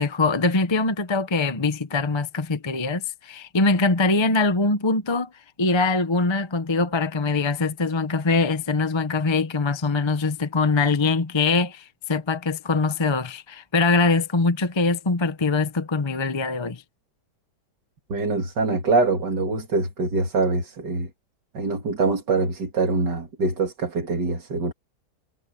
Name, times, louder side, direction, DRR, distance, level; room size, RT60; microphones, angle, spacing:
voice 1, 0.0-5.3 5.6-16.8, left 3 dB, 20° left, 0.8 m, -23 dB
voice 2, 18.1-21.1 21.5-24.7, right 3 dB, 85° right, 3.2 m, -24 dB
omnidirectional pair, 1.8 m